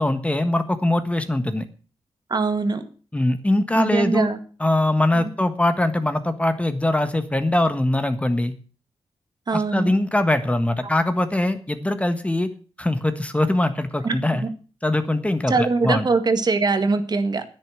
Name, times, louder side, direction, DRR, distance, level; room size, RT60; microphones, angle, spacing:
voice 1, 0.0-1.6 3.1-4.3 4.6-8.5 9.5-12.5 12.8-14.4 14.8-16.0, left 1 dB, 15° left, 9 dB, 1.5 m, -22 dB
voice 2, 2.3-2.9 3.7-4.4 5.1-5.3 9.5-9.9 14.0-14.5 15.5-17.4, right 4 dB, 50° right, 8 dB, 1.8 m, -22 dB
10.0 x 9.5 x 7.5 m, 0.39 s
cardioid pair, 80°, 9 cm